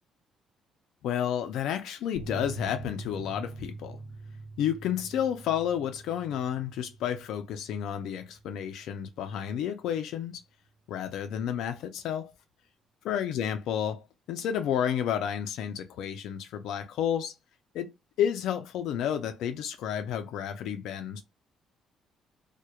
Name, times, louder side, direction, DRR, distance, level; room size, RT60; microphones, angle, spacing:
voice 1, 1.0-4.0 4.6-10.4 10.9-12.3 13.0-17.3 17.7-17.9 18.2-21.2, left 9 dB, 75° left, 0.3 m, -31 dB
sound 1, 2.1-9.3 9.5-9.6 9.9-10.0, right 3 dB, 15° right, 1.1 m, -44 dB
2.8 x 2.1 x 2.2 m
cardioid pair, 155°, 0 cm